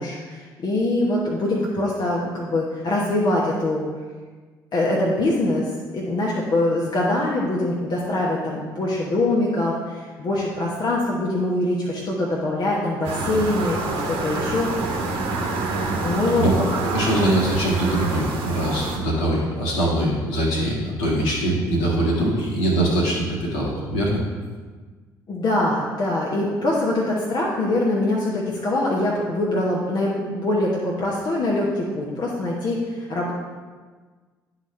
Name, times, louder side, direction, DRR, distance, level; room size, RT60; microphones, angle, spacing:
voice 1, 0.0-3.9 4.7-14.7 16.0-16.5 25.3-33.3, left 2 dB, 45° left, -4 dB, 1.1 m, -23 dB
sound 1, 13.0-19.0, right 3 dB, 55° right, 1.0 m, -27 dB
voice 2, 16.9-24.2, right 1 dB, 65° left, -4 dB, 1.8 m, -22 dB
10.5 x 4.1 x 3.3 m, 1.4 s
figure-of-eight pair, 50°, 11 cm